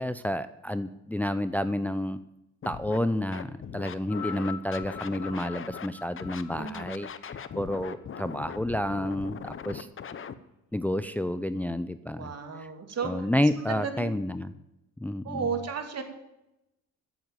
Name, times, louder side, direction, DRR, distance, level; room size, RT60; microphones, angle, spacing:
voice 1, 0.0-2.2 2.6-9.9 10.7-12.3 12.6-12.7 13.0-14.5 15.0-15.5, left 1 dB, 5° left, 12 dB, 0.6 m, -30 dB
Scratching (performance technique), 2.6-3.0 3.3-5.9 6.2-10.3, left 7 dB, 45° left, 1.0 m, -40 dB
sound 1, 4.0-8.5 9.4-9.5, left 7 dB, 70° left, 2.7 m, -44 dB
voice 2, 6.6-6.9 12.2-13.3 13.6-14.1 15.2-16.0, right 6 dB, 55° right, 5 dB, 2.8 m, -34 dB
14.0 x 8.0 x 7.5 m, 0.88 s
cardioid pair, 90°, 30 cm